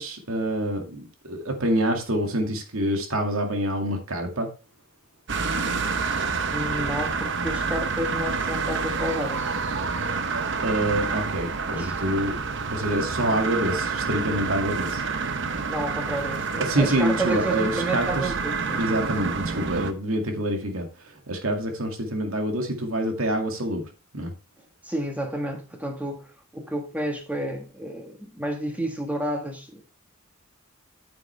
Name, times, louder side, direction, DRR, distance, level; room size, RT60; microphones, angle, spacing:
voice 1, 0.0-4.5 10.6-12.4 12.7-15.0 16.6-18.3 18.7-23.8 24.1-24.3, right 1 dB, 75° right, 2.2 m, -26 dB
sound 1, 5.3-19.9, right 4 dB, 60° right, 0.9 m, -28 dB
voice 2, 6.5-9.5 11.7-12.0 15.7-18.9 24.8-29.8, right 1 dB, 5° right, 1.6 m, -31 dB
9.2 x 7.7 x 3.4 m
head